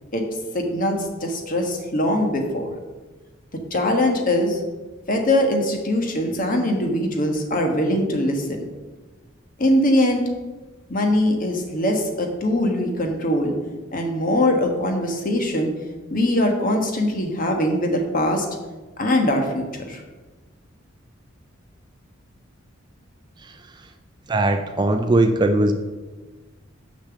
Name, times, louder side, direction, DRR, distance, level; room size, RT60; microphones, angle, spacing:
voice 1, 0.5-2.7 3.7-4.6 5.1-8.6 9.6-10.3 10.9-13.5 13.9-15.7 16.1-18.5 19.0-20.0, left 1 dB, 40° left, 3 dB, 1.3 m, -22 dB
voice 2, 24.3-25.7, right 2 dB, 20° right, 7 dB, 0.4 m, -19 dB
6.8 x 5.8 x 7.0 m, 1.3 s
head